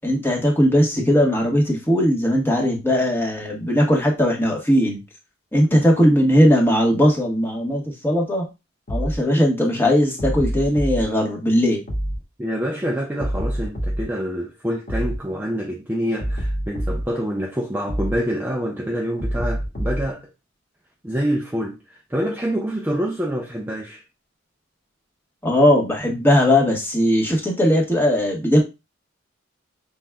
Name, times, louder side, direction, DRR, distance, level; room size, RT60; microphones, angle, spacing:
voice 1, 0.0-5.0 5.5-8.5 8.9-11.8 25.4-28.6, equal, 10° left, 1.2 m, -18 dB
sound 1, 8.9-9.2 10.2-11.0 11.9-12.2 13.2-14.1 14.9-15.2 16.2-17.1 17.9-18.2 19.2-20.1, equal, 45° left, 1.6 m, -25 dB
voice 2, 12.4-20.3 21.0-24.0, equal, 10° right, 0.5 m, -26 dB
5.8 x 3.5 x 2.3 m
head